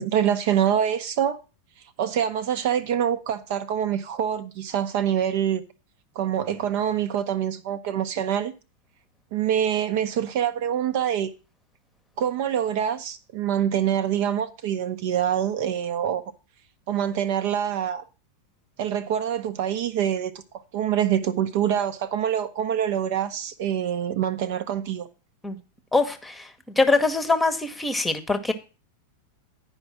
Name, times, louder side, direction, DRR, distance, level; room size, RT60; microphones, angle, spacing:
voice 1, 0.0-1.4 2.0-5.6 6.2-8.5 9.3-11.3 12.2-16.2 16.9-18.0 18.8-20.3 20.7-25.1, right 9 dB, 50° right, 0.7 m, -25 dB
voice 2, 25.9-26.5 26.8-28.5, left 3 dB, 10° left, 1.0 m, -23 dB
9.8 x 5.2 x 6.1 m
figure-of-eight pair, 90°, 0 cm